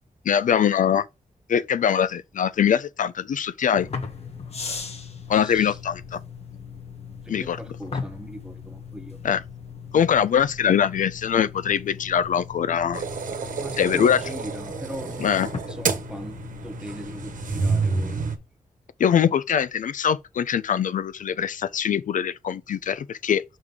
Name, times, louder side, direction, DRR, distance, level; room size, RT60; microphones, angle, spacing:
voice 1, 0.3-1.1 1.5-3.9 5.3-6.2 7.3-7.6 9.2-9.4 9.9-13.0 13.8-14.2 15.2-15.5 19.0-23.4, left 8 dB, 65° left, 0.4 m, -22 dB
sound 1, 3.7-18.4, left 5 dB, 50° left, 1.4 m, -38 dB
voice 2, 5.3-5.8 7.2-9.2 13.5-18.2, equal, 5° right, 1.1 m, -39 dB
sound 2, 12.9-18.4, right 5 dB, 70° right, 1.2 m, -29 dB
6.2 x 3.6 x 4.8 m
wide cardioid pair, 150°, 14 cm